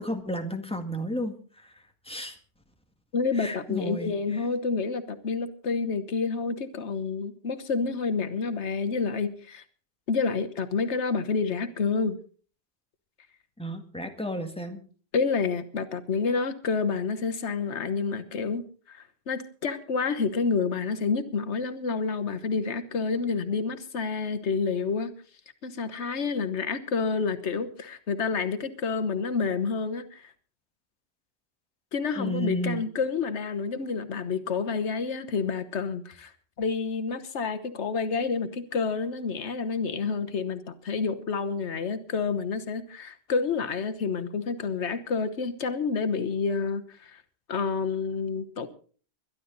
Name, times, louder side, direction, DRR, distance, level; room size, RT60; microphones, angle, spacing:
voice 1, 0.0-1.7 2.1-2.4 3.3-4.5 13.6-14.8 32.2-32.8, equal, 5° left, 4 dB, 1.9 m, -32 dB
voice 2, 3.1-9.6 10.1-12.2 15.1-25.1 25.6-30.2 31.9-36.3 36.6-47.2 47.5-48.7, left 5 dB, 85° left, 11 dB, 1.4 m, -29 dB
22.0 x 11.5 x 3.9 m, 0.42 s
omnidirectional pair, 1.1 m